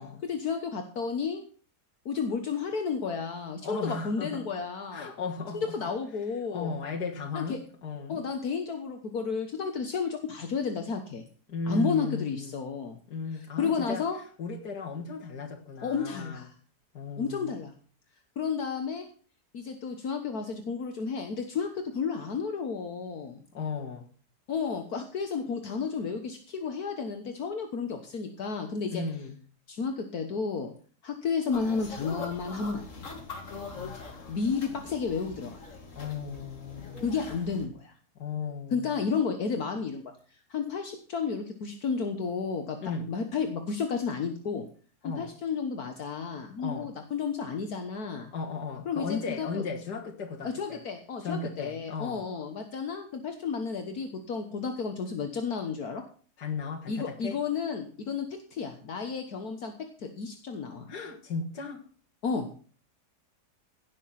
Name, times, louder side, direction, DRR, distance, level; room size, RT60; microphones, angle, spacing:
voice 1, 0.2-1.4 2.1-5.1 5.5-6.7 7.3-7.6 8.1-11.2 11.7-13.0 13.3-14.2 15.8-16.5 17.2-17.7 18.4-19.1 19.5-23.4 24.5-29.0 29.7-30.7 31.0-32.9 34.3-35.6 37.0-37.9 38.7-40.0 40.5-42.8 43.1-44.7 45.0-48.3 48.9-49.6 50.4-56.0 56.9-59.7 60.0-60.9 62.2-62.5, left 5 dB, 65° left, 5 dB, 1.8 m, -32 dB
voice 2, 3.6-4.5 4.9-5.7 6.5-8.2 11.5-12.6 13.1-14.1 14.4-16.5 16.9-17.6 23.5-24.0 28.9-29.4 33.7-34.3 36.0-37.1 38.2-39.0 42.8-43.1 45.0-45.3 46.6-46.9 48.3-50.8 51.2-52.2 56.4-57.4 60.9-61.8, left 4 dB, 85° left, 0 dB, 2.2 m, -36 dB
sound 1, 31.5-37.7, left 3 dB, 50° left, 2.6 m, -42 dB
17.0 x 6.7 x 5.9 m, 0.41 s
omnidirectional pair, 1.7 m